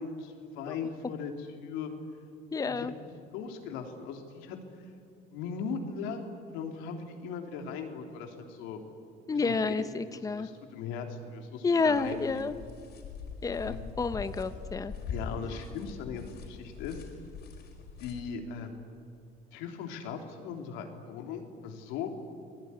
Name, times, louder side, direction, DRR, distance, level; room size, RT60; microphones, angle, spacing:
voice 1, 0.0-1.9 2.6-2.9 3.3-4.6 5.3-8.8 9.3-9.7 10.2-12.5 13.6-13.8 15.0-17.0 18.0-18.7 19.5-22.1, left 6 dB, 90° left, 4 dB, 3.5 m, -39 dB
voice 2, 2.5-2.9 9.3-10.5 11.6-12.5 13.4-14.9, left 4 dB, 20° left, 11 dB, 0.9 m, -29 dB
sound 1, 11.9-18.2, left 5 dB, 60° left, 5.4 m, -42 dB
29.0 x 20.0 x 9.9 m, 2.4 s
cardioid pair, 115°, 19 cm